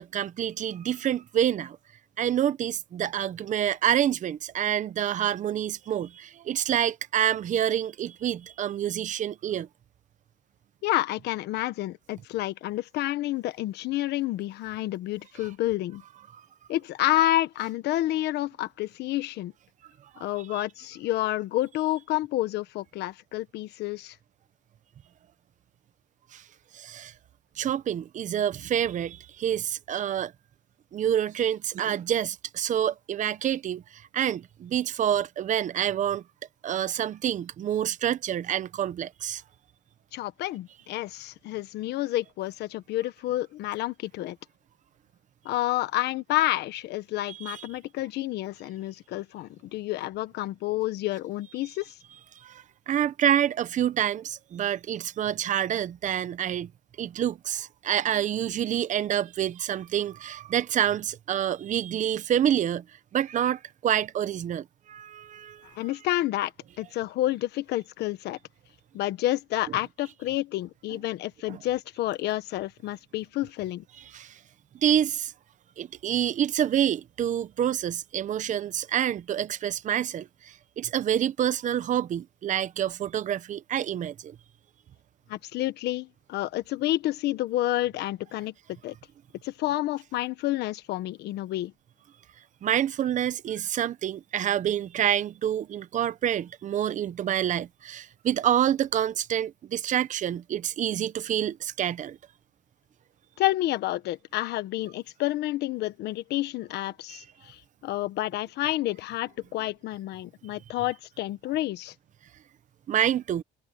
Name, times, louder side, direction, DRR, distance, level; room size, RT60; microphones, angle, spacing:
voice 1, 0.0-1.8 2.2-9.7 16.3-16.4 20.1-20.2 20.5-20.6 26.3-26.4 26.7-27.1 27.6-30.3 30.9-36.2 36.6-39.4 47.3-47.6 52.4-56.7 57.0-62.8 63.1-65.7 71.5-71.6 74.1-74.4 74.8-75.3 75.8-84.3 92.6-102.2 107.1-107.2 112.9-113.4, right 10 dB, 50° right, 0.9 m, -27 dB
voice 2, 10.8-16.0 16.7-19.5 20.2-24.2 40.1-44.4 45.4-51.9 65.7-66.5 66.8-68.4 68.9-73.8 85.3-88.5 88.8-88.9 89.4-91.7 103.4-111.9, left 15 dB, 80° left, 1.3 m, -29 dB
cardioid pair, 110°, 17 cm